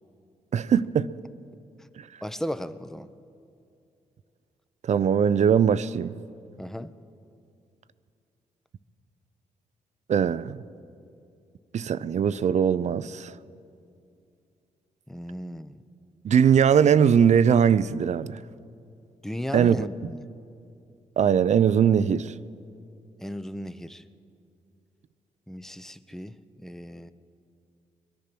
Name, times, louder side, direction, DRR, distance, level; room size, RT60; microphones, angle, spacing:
voice 1, 0.5-1.1 4.9-6.1 10.1-10.6 11.7-13.3 16.2-18.4 19.5-19.8 21.2-22.3, right 8 dB, 55° right, 0.5 m, -21 dB
voice 2, 2.2-3.1 6.6-6.9 15.1-15.8 19.2-20.2 23.2-24.0 25.5-27.1, equal, 5° left, 0.7 m, -35 dB
21.5 x 10.5 x 6.1 m
supercardioid pair, 55°, 14 cm